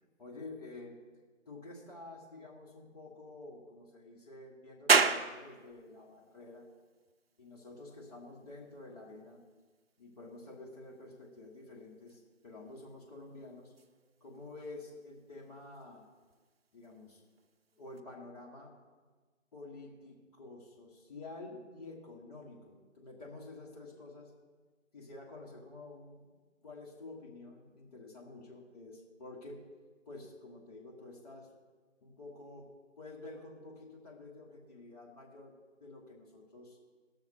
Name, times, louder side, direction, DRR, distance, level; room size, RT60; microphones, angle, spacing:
voice 1, 0.2-1.0 1.4-6.7 7.4-9.4 10.0-13.7 14.2-16.1 16.7-17.2 17.7-18.8 19.5-24.3 24.9-26.4 26.6-29.6 30.0-31.5 32.0-32.7 33.0-36.8, left 2 dB, 30° left, -3 dB, 1.7 m, -49 dB
sound 1, 4.9-18.0, right 5 dB, 50° right, 0.6 m, -37 dB
19.0 x 6.4 x 4.4 m, 1.4 s
figure-of-eight pair, 145°, 39 cm